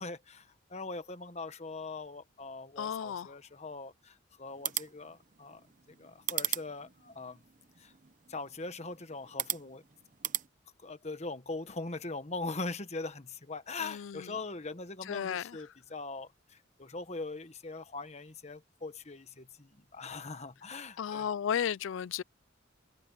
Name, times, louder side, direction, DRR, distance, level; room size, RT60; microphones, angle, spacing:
voice 1, 0.0-5.6 6.0-7.4 7.8-7.9 8.3-9.8 10.8-21.3, left 3 dB, 35° left, 1.3 m, -41 dB
voice 2, 2.8-3.3 13.8-14.3 15.1-15.6 21.0-22.2, left 8 dB, 75° left, 0.4 m, -34 dB
sound 1, 4.5-10.5, right 12 dB, 40° right, 0.7 m, -39 dB
head